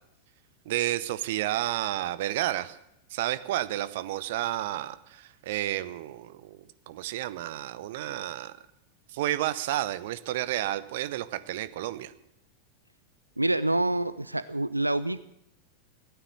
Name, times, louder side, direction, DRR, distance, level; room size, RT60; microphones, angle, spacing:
voice 1, 0.7-2.8 3.1-8.5 9.1-12.1, right 14 dB, 55° right, 14 dB, 0.8 m, -31 dB
voice 2, 13.4-15.2, right 2 dB, 85° right, 15 dB, 0.4 m, -27 dB
15.5 x 9.3 x 8.2 m, 0.83 s
figure-of-eight pair, 90°, 0 cm